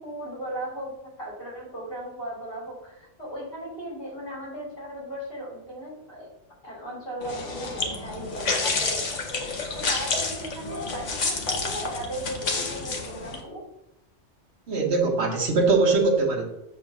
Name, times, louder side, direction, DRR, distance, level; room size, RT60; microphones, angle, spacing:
voice 1, 0.0-6.3 6.6-9.0 9.3-13.6, right 1 dB, 50° left, -5 dB, 3.0 m, -37 dB
sound 1, 7.2-13.4, left 3 dB, 80° left, 1.4 m, -29 dB
voice 2, 14.7-16.5, right 3 dB, 65° right, 2 dB, 1.3 m, -22 dB
7.6 x 3.1 x 6.0 m, 0.86 s
omnidirectional pair, 1.3 m